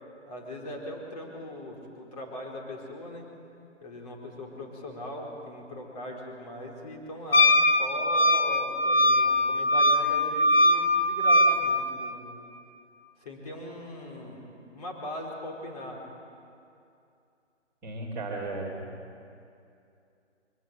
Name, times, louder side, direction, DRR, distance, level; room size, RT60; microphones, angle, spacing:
voice 1, 0.3-3.3 3.8-7.5 7.8-12.3 13.2-14.5 14.7-16.0, left 1 dB, 30° left, -1 dB, 4.3 m, -40 dB
Wind instrument woodwind instrument, 7.3-11.6, left 1 dB, 50° left, 1.7 m, -21 dB
voice 2, 17.8-18.9, right 2 dB, 5° right, -11 dB, 2.9 m, -35 dB
23.5 x 17.5 x 9.0 m, 2.6 s
figure-of-eight pair, 160°, 37 cm